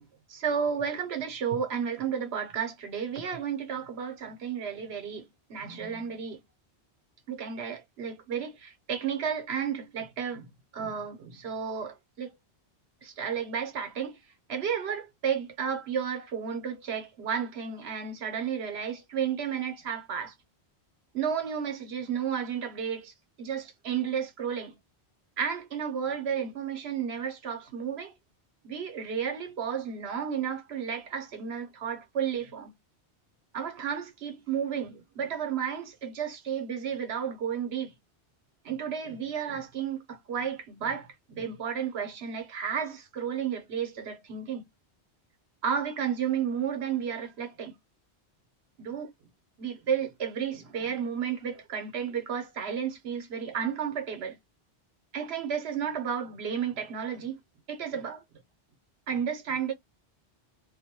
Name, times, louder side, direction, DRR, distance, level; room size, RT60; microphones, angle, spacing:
voice 1, 0.0-6.4 7.3-10.5 10.7-12.3 13.0-14.2 14.5-20.3 21.1-23.1 23.4-24.8 25.4-28.1 28.6-32.7 33.5-37.9 38.6-44.6 45.6-47.7 48.8-49.1 49.6-54.4 55.1-57.4 57.7-58.2 59.1-59.7, right 7 dB, 70° right, 1.0 m, -32 dB
2.5 x 2.1 x 2.7 m
omnidirectional pair, 1.1 m